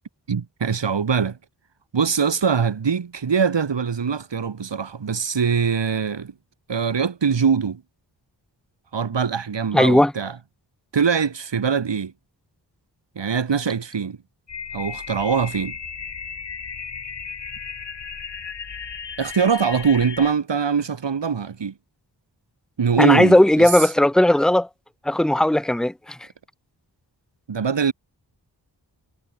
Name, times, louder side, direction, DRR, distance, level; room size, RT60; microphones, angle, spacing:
voice 1, 0.3-1.4 1.9-6.3 6.7-7.8 8.9-10.4 10.9-12.1 13.2-14.2 14.7-15.8 19.2-21.7 22.8-23.9 27.5-27.9, right 6 dB, 80° right, 5.5 m, -22 dB
voice 2, 9.7-10.1 23.0-24.7 25.0-26.2, left 1 dB, ahead, 1.2 m, -16 dB
sound 1, 14.5-20.3, left 6 dB, 75° left, 6.2 m, -35 dB
wide cardioid pair, 75°, 43 cm